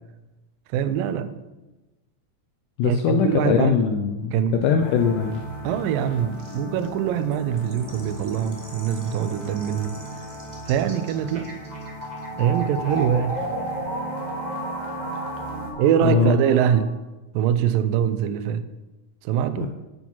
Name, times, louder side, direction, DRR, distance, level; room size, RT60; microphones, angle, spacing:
voice 1, 0.7-1.3 2.8-3.7 4.3-4.9 5.6-10.0 10.7-11.6 12.4-13.4 15.8-17.0 17.3-18.7 19.2-19.7, right 9 dB, 80° right, 2.3 m, -23 dB
voice 2, 2.8-5.4 16.0-16.4 19.6-19.7, left 7 dB, 80° left, 1.9 m, -21 dB
sound 1, 4.8-15.7, equal, 10° left, 1.8 m, -37 dB
sound 2, 5.3-5.4 5.7-5.8 6.1-6.2 6.4-6.9 7.3-16.8, right 1 dB, 25° right, 0.8 m, -34 dB
8.5 x 7.2 x 5.7 m
omnidirectional pair, 4.2 m